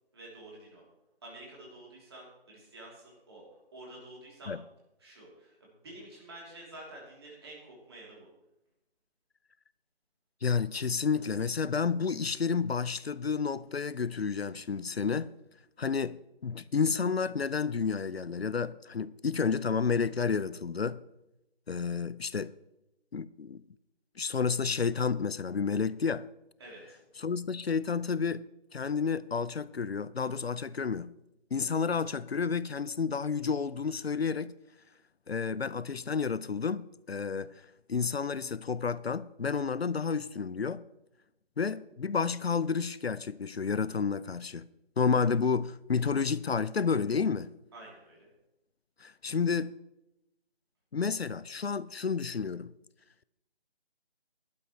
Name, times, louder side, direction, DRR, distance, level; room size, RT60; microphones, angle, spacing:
voice 1, 0.1-0.8 1.2-3.4 3.7-4.6 5.0-8.3 26.6-27.0 47.7-48.3, right 1 dB, 25° right, 3.0 m, -49 dB
voice 2, 10.4-15.3 15.8-21.0 21.7-22.5 23.1-23.6 24.2-26.3 27.2-28.5 28.7-31.1 31.5-34.6 35.3-37.5 37.9-40.9 41.6-44.7 45.0-47.5 49.0-49.8 50.9-52.7, left 5 dB, 75° left, 0.5 m, -30 dB
13.5 x 11.5 x 3.1 m
figure-of-eight pair, 160°, 31 cm